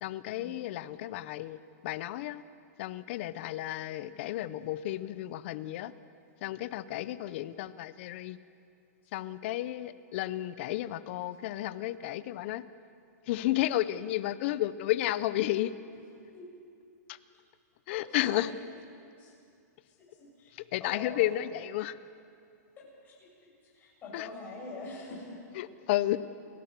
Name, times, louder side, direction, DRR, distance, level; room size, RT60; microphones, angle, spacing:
voice 1, 0.0-2.4 2.8-5.9 6.4-8.4 9.1-12.6 13.3-15.7 17.1-17.2 17.9-18.5 20.5-22.0 24.1-24.3 25.6-26.2, left 15 dB, 40° left, 15 dB, 0.8 m, -32 dB
voice 2, 20.1-20.5 20.8-21.2 22.8-23.3 23.7-25.4, left 2 dB, 20° left, -5 dB, 7.9 m, -44 dB
28.5 x 16.0 x 6.8 m, 2.5 s
hypercardioid pair, 160°, 10 cm